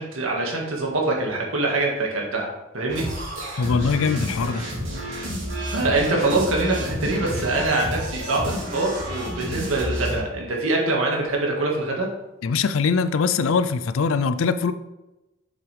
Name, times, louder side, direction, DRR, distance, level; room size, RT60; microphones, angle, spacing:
voice 1, 0.0-2.5 2.7-3.1 3.4-3.8 5.7-12.1, right 2 dB, 85° right, -1 dB, 1.9 m, -24 dB
sound 1, 2.9-10.2, equal, 70° right, 2.9 m, -30 dB
voice 2, 3.6-4.7 12.4-14.7, left 5 dB, 80° left, 13 dB, 0.4 m, -22 dB
7.2 x 6.9 x 3.4 m, 1.0 s
head